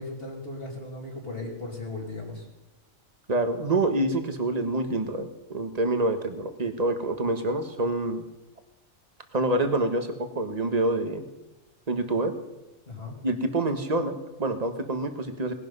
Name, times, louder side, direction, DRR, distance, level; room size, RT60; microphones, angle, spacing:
voice 1, 0.0-2.4 12.9-13.2, left 2 dB, 45° left, -3 dB, 3.0 m, -37 dB
voice 2, 3.3-8.2 9.3-11.2 11.9-12.3 13.2-15.5, right 2 dB, 30° right, 7 dB, 1.4 m, -27 dB
18.5 x 11.5 x 5.5 m, 1.0 s
omnidirectional pair, 1.4 m